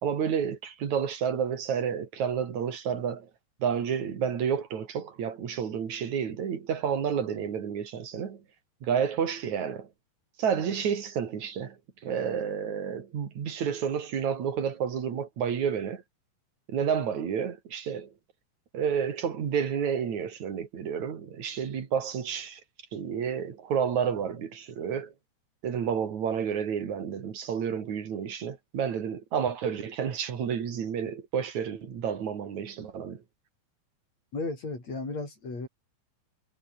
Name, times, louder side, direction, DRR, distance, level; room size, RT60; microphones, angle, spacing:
voice 1, 0.0-3.3 3.6-8.4 8.8-9.9 10.4-16.0 16.7-18.1 18.7-22.6 22.9-25.1 25.6-33.2, right 7 dB, 75° right, 3.8 m, -30 dB
voice 2, 34.3-35.7, left 3 dB, 65° left, 9.0 m, -34 dB
omnidirectional pair, 3.3 m